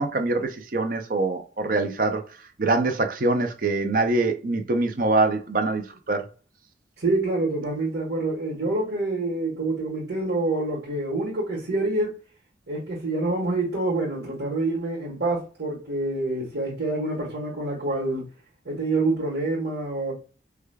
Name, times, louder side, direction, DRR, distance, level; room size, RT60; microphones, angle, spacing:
voice 1, 0.0-2.2 2.6-6.2, right 2 dB, 50° right, 0.5 m, -24 dB
voice 2, 7.0-12.2 12.7-18.3 18.6-20.1, right 2 dB, 85° right, 1.3 m, -27 dB
4.8 x 2.2 x 2.3 m
head